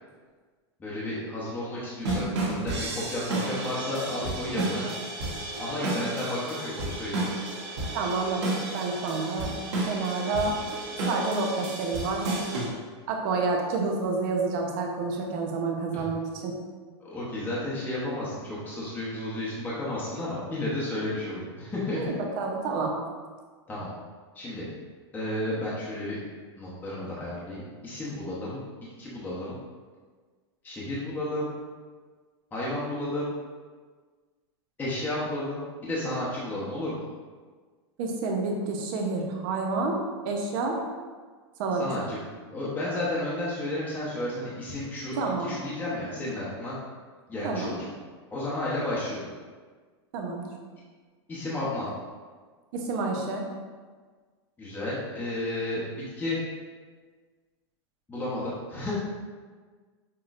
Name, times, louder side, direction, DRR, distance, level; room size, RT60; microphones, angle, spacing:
voice 1, 0.8-4.9 5.6-7.2 15.9-16.0 17.0-22.0 23.7-23.9 24.3-24.6 25.1-26.2 26.6-28.6 29.0-29.6 30.6-31.5 32.5-33.3 34.8-37.0 41.7-42.2 42.5-46.8 47.3-47.8 48.3-49.3 51.3-51.9 54.6-56.4 58.1-58.9, left 1 dB, 10° left, -8 dB, 0.8 m, -32 dB
sound 1, 2.0-12.7, right 2 dB, 75° right, 1.5 m, -32 dB
voice 2, 7.9-9.5 9.9-10.5 11.1-12.3 13.1-16.6 22.0-22.9 38.0-40.0 40.2-40.8 41.6-42.0 45.2-45.5 47.4-47.7 50.1-50.4 52.7-53.4, right 3 dB, 50° right, 1 dB, 0.8 m, -29 dB
6.1 x 3.0 x 2.5 m, 1.5 s
supercardioid pair, 150°, 15 cm